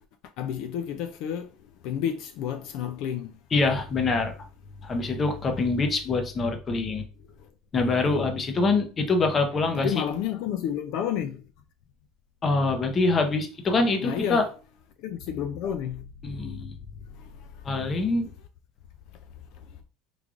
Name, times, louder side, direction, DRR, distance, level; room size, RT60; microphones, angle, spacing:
voice 1, 0.4-1.5 1.8-3.4 7.4-7.5 9.7-11.4 14.0-14.5 15.0-16.0 17.1-18.0 19.5-19.8, left 9 dB, 60° left, 0.3 m, -31 dB
voice 2, 3.5-4.3 4.8-7.0 7.7-9.9 12.4-14.4 16.2-16.7 17.6-18.3, left 3 dB, 25° left, 0.6 m, -24 dB
3.6 x 3.2 x 2.4 m
cardioid pair, 150°, 0 cm